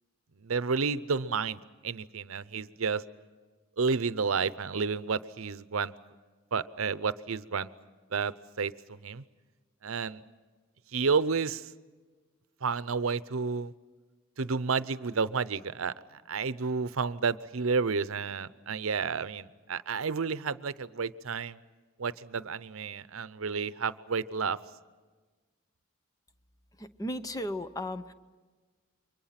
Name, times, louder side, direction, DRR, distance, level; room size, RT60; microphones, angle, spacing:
voice 1, 0.4-3.0 3.8-5.9 6.5-7.7 8.1-8.7 9.0-9.2 9.8-10.2 10.9-11.7 12.6-13.7 14.4-15.9 16.3-21.6 22.0-24.6, right 5 dB, 80° right, 16 dB, 0.7 m, -31 dB
voice 2, 26.8-28.1, left 1 dB, 20° left, 11 dB, 0.8 m, -35 dB
29.0 x 24.0 x 5.9 m, 1.4 s
head